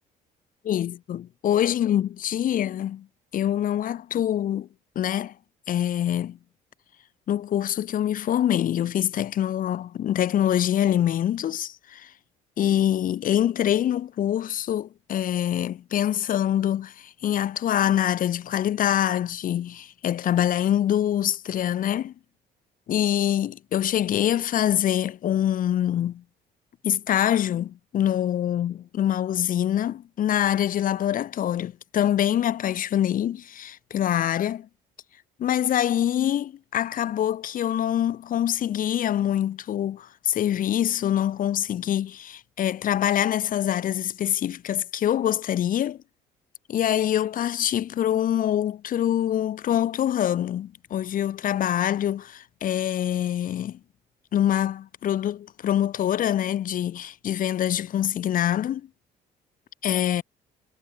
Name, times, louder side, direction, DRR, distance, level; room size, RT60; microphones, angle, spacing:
voice 1, 0.6-3.1 3.3-4.7 4.9-5.3 5.7-6.4 7.3-12.1 12.6-22.1 22.9-26.2 26.8-34.7 35.4-46.0 46.7-53.8 54.3-58.9 59.8-60.2, left 11 dB, 55° left, 1.5 m, -25 dB
cardioid pair, 110°, 17 cm